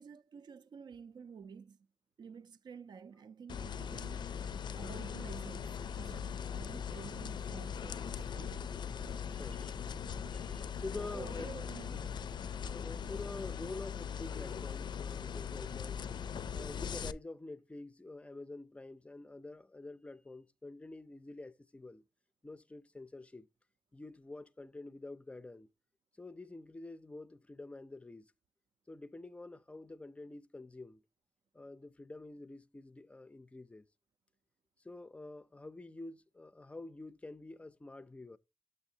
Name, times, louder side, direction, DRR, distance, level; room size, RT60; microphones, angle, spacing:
voice 1, 0.0-1.8 2.2-4.3 4.7-8.6 11.1-12.1, right 6 dB, 75° right, 0.5 m, -50 dB
sound 1, 3.5-17.1, left 7 dB, 85° left, 0.4 m, -40 dB
voice 2, 9.3-9.8 10.3-11.5 12.7-16.0 16.5-22.0 22.4-23.5 23.9-25.7 26.2-28.3 28.9-31.0 31.5-33.9 34.8-38.4, left 2 dB, 15° left, 0.4 m, -47 dB
7.1 x 6.6 x 2.7 m
wide cardioid pair, 180°, 8 cm